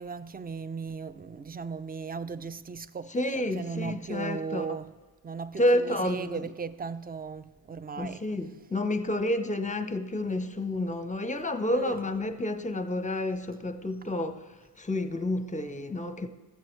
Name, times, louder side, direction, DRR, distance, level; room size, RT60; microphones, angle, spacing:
voice 1, 0.0-3.1 3.6-4.9 5.2-5.6 5.9-8.2 11.7-11.9, right 5 dB, 20° right, 0.4 m, -37 dB
voice 2, 3.1-4.7 5.6-6.5 8.0-14.4 14.8-16.3, left 1 dB, 15° left, 0.7 m, -29 dB
13.5 x 7.6 x 3.2 m
cardioid pair, 45°, 46 cm